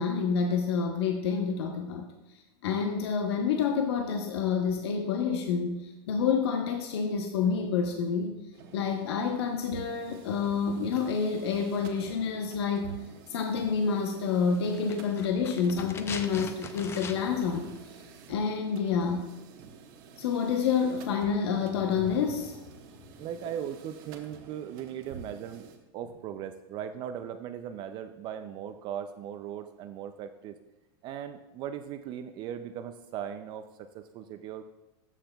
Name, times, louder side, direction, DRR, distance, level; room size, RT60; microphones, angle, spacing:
voice 1, 0.0-2.1 2.6-8.3 8.7-12.9 13.3-17.7 18.3-19.2 20.2-22.6, left 6 dB, 75° left, 3 dB, 0.9 m, -28 dB
sound 1, 8.5-25.8, right 5 dB, 55° right, 1.2 m, -49 dB
sound 2, 14.6-17.5 17.8-17.9, left 6 dB, 20° left, 0.5 m, -41 dB
voice 2, 23.2-25.7 25.9-30.6 31.0-34.6, right 9 dB, 35° right, 9 dB, 0.4 m, -38 dB
13.0 x 5.8 x 2.3 m, 1.0 s
supercardioid pair, 140°, 14 cm